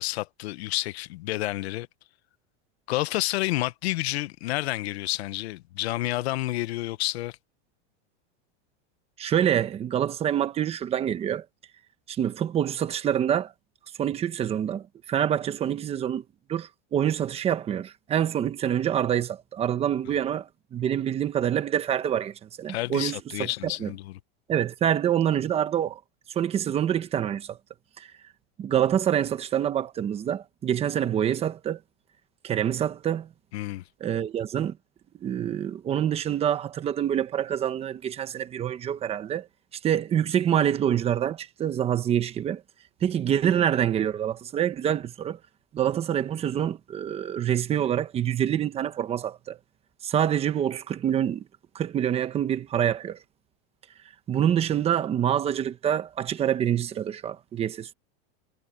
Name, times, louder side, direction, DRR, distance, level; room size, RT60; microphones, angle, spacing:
voice 1, 0.0-1.9 2.9-7.4 22.7-24.2 33.5-33.8, left 17 dB, 85° left, 0.9 m, -29 dB
voice 2, 9.2-11.4 12.1-13.5 14.0-16.2 16.5-23.9 24.5-26.0 26.3-27.6 28.0-28.1 28.6-31.8 32.4-33.3 34.0-34.8 35.2-39.5 39.8-42.6 43.0-45.4 45.7-49.6 50.0-51.4 51.7-53.2 54.3-57.9, right 10 dB, 20° right, 1.1 m, -26 dB
supercardioid pair, 170°, 31 cm